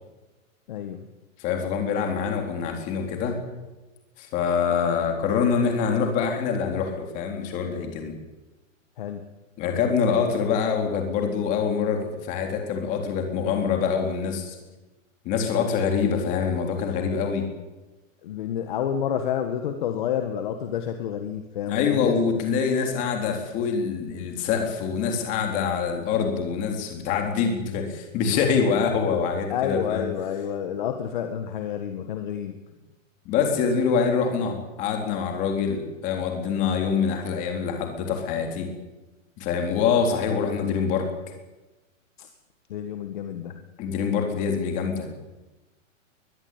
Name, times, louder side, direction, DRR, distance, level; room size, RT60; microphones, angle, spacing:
voice 1, 0.7-1.1 9.0-9.3 18.2-22.2 29.5-32.6 42.2-42.3 42.7-43.7, left 9 dB, 35° left, 6 dB, 1.8 m, -29 dB
voice 2, 1.4-3.4 4.2-8.1 9.6-14.6 15.2-17.5 21.7-30.1 33.3-38.7 39.4-41.1 43.8-45.1, left 6 dB, 20° left, 3 dB, 3.6 m, -25 dB
22.0 x 20.0 x 9.2 m, 1.1 s
hypercardioid pair, 175°, 40 cm